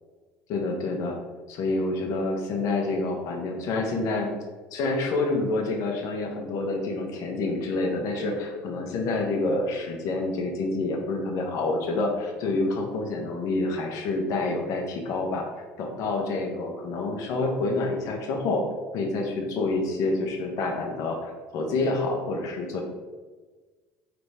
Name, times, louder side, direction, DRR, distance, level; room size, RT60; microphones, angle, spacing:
voice 1, 0.5-1.2 1.5-4.3 4.7-15.5 15.8-18.6 18.9-22.8, left 2 dB, 65° left, 2 dB, 0.9 m, -28 dB
4.0 x 3.4 x 3.3 m, 1.3 s
supercardioid pair, 80°, 6 cm